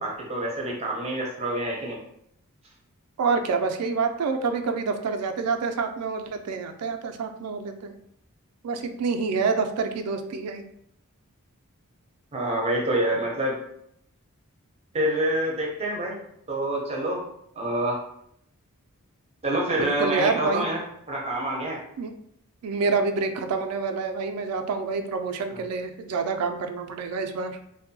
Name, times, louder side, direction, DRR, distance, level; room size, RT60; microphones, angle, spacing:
voice 1, 0.0-2.0 12.3-13.6 14.9-16.2 16.5-17.3 17.6-18.0 19.4-21.8 25.5-25.6, right 1 dB, 30° right, -2 dB, 0.6 m, -27 dB
voice 2, 3.2-7.9 8.6-10.6 19.8-20.7 22.0-22.1 22.6-27.6, right 4 dB, 75° right, 7 dB, 0.3 m, -27 dB
2.6 x 2.2 x 2.6 m, 0.74 s
head